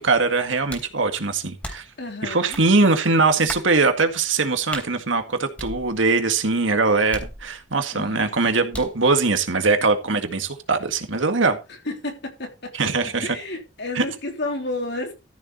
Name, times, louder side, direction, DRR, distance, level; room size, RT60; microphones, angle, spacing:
voice 1, 0.0-1.8 2.2-11.6 12.7-13.4 14.0-14.1, right 3 dB, 85° right, 1.9 m, -21 dB
sound 1, 0.7-1.0 1.6-2.0 2.5-2.7 3.5-3.7 4.7-4.9 5.6-6.2 7.1-7.8 8.7-9.0, equal, 5° left, 3.2 m, -36 dB
voice 2, 2.0-2.6 7.9-8.4 11.8-15.1, left 2 dB, 60° left, 3.4 m, -31 dB
14.0 x 7.3 x 4.1 m
head